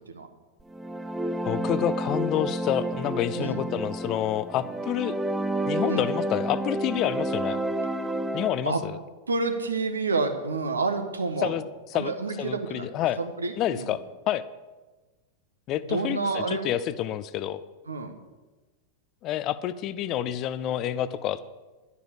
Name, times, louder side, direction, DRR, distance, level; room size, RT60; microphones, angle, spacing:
sound 1, 0.7-8.6, right 1 dB, 5° right, 0.7 m, -30 dB
voice 1, 1.5-5.1 5.6-7.6 8.3-9.0 11.4-11.7 11.9-13.2 13.6-14.4 15.7-17.6 19.2-21.5, left 11 dB, 35° left, 15 dB, 0.6 m, -28 dB
voice 2, 9.3-11.6 11.9-12.9 13.2-14.0 15.8-16.7 17.9-18.1, right 3 dB, 75° right, 6 dB, 1.4 m, -29 dB
12.0 x 8.3 x 7.2 m, 1.2 s
figure-of-eight pair, 90°, 0 cm